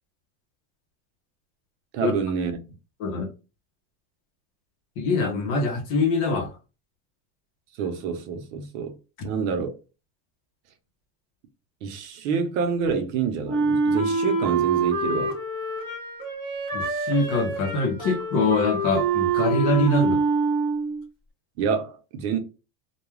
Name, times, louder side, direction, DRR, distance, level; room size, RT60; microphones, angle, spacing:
voice 1, 1.9-2.6 7.8-9.0 9.2-9.7 11.8-15.3 21.6-22.4, right 6 dB, 60° right, 0.7 m, -27 dB
voice 2, 5.0-6.5 16.7-20.2, left 2 dB, 40° left, 0.8 m, -24 dB
Wind instrument woodwind instrument, 13.5-21.0, right 4 dB, 10° right, 0.9 m, -25 dB
2.3 x 2.3 x 3.1 m
supercardioid pair, 160°, 49 cm